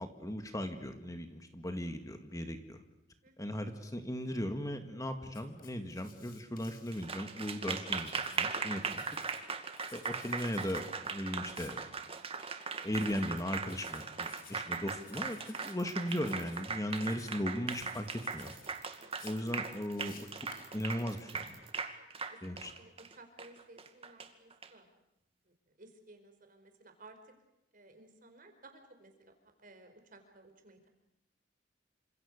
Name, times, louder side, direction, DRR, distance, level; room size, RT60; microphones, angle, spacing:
voice 1, 0.0-2.8 3.4-9.0 9.9-11.8 12.8-18.1 18.3-18.5 19.2-21.5 22.4-22.7, equal, 20° left, 7 dB, 2.0 m, -37 dB
Writing, 5.3-7.6 7.9-9.4 9.8-10.8 11.4-11.8 12.9-13.3 13.6-14.6 15.0-15.7 16.0-16.6 16.9-17.4 17.7-18.7 19.1-21.4, left 7 dB, 55° left, 5.0 m, -57 dB
Applause, 6.9-24.7, right 5 dB, 35° right, 2.2 m, -39 dB
sound 1, 13.4-13.6 14.2-14.4 14.7-14.9 15.7-16.4 18.3-21.7, right 13 dB, 85° right, 6.7 m, -56 dB
voice 2, 22.3-24.9 25.8-27.3 27.7-29.3 29.6-30.9, right 2 dB, 50° right, 6 dB, 5.1 m, -57 dB
28.5 x 26.5 x 6.7 m, 0.86 s
head